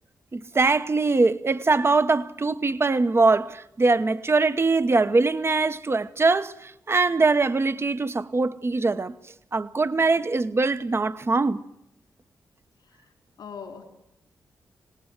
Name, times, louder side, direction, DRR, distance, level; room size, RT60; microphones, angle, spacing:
voice 1, 0.3-9.1 9.5-11.6, right 3 dB, 35° right, 1.0 m, -22 dB
voice 2, 13.4-13.8, left 6 dB, 80° left, 4.0 m, -41 dB
26.5 x 19.0 x 8.0 m
cardioid pair, 55°, 7 cm